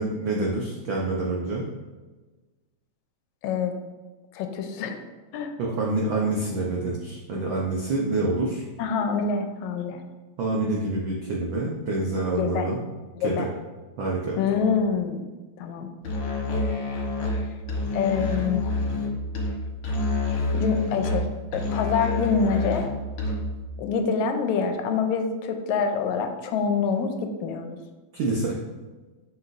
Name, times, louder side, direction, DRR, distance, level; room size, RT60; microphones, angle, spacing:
voice 1, 0.0-1.7 5.6-8.7 10.4-12.8 13.2-13.5 14.0-14.3 28.1-28.6, right 2 dB, 85° right, -3 dB, 1.0 m, -27 dB
voice 2, 3.4-3.7 4.3-5.0 5.3-5.5 8.8-10.0 12.3-12.7 13.2-13.5 14.4-15.2 15.6-15.9 17.9-18.7 20.5-22.9 23.8-27.1 27.4-27.8, left 6 dB, 80° left, 6 dB, 1.9 m, -26 dB
Musical instrument, 16.0-23.6, left 2 dB, 55° left, 1.7 m, -27 dB
7.0 x 6.4 x 2.6 m, 1.3 s
omnidirectional pair, 3.3 m